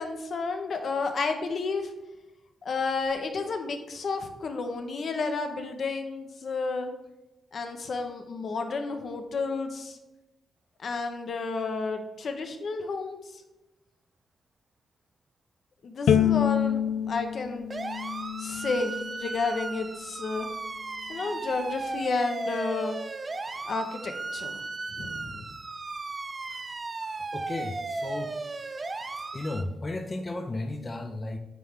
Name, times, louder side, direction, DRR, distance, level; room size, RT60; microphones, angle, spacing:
voice 1, 0.0-1.9 2.6-6.9 7.5-10.0 10.8-13.4 15.8-17.6 18.4-20.5 21.1-23.0 23.6-24.6 24.9-25.4, left 4 dB, 55° left, 5 dB, 0.9 m, -31 dB
Bowed string instrument, 16.1-19.3, left 9 dB, 75° left, 0.3 m, -27 dB
sound 1, 17.7-29.6, right 3 dB, 30° right, 0.4 m, -36 dB
voice 2, 27.0-28.4 29.3-31.4, left 2 dB, 25° left, 4 dB, 0.5 m, -34 dB
9.3 x 3.3 x 3.6 m, 1.0 s
cardioid pair, 95°, 0 cm